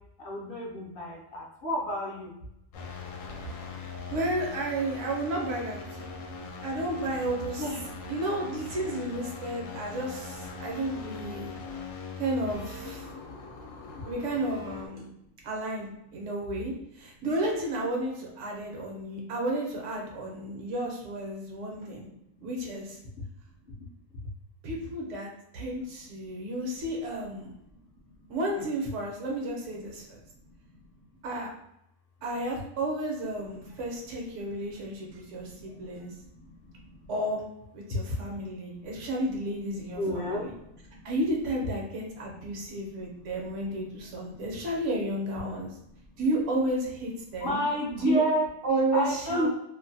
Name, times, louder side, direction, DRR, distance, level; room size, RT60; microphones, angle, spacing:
voice 1, 0.2-2.3 7.6-7.8 35.5-35.6 36.6-36.8 40.0-40.5 47.4-48.5 48.9-49.5, equal, 55° left, -2 dB, 0.7 m, -30 dB
sound 1, 2.7-14.9, left 4 dB, 75° left, 0.9 m, -41 dB
voice 2, 4.1-6.1 6.6-7.6 8.1-11.5 12.2-13.1 14.1-15.1 15.4-22.1 22.4-23.0 24.6-27.5 28.3-30.2 31.2-31.5 32.2-36.1 37.1-37.4 37.7-40.5 41.0-45.8 46.2-47.6 48.0-48.2 48.6-49.5, right 1 dB, 65° right, -1 dB, 1.0 m, -32 dB
2.5 x 2.1 x 2.6 m, 0.80 s
omnidirectional pair, 1.4 m